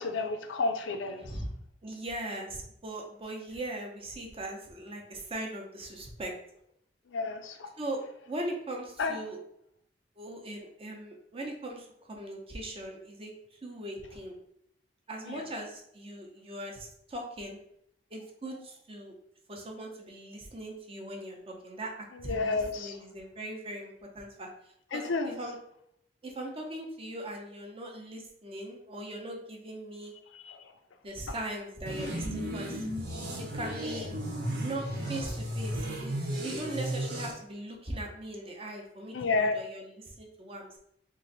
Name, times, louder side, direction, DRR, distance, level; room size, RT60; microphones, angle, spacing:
voice 1, 0.0-1.4 7.1-7.7 9.0-9.2 15.3-15.5 22.1-22.9 24.9-25.4 30.3-30.6 39.1-39.5, left 3 dB, 85° left, 6 dB, 0.5 m, -31 dB
voice 2, 1.8-6.3 7.8-9.4 10.2-14.4 15.1-17.6 18.1-19.1 19.5-21.9 22.2-24.5 24.9-25.6 26.2-30.1 31.0-32.9 33.4-34.1 34.6-40.8, right 1 dB, 30° right, 1 dB, 0.7 m, -40 dB
sound 1, 31.9-37.3, right 1 dB, 60° right, 1.0 m, -34 dB
3.1 x 2.5 x 3.9 m, 0.73 s
head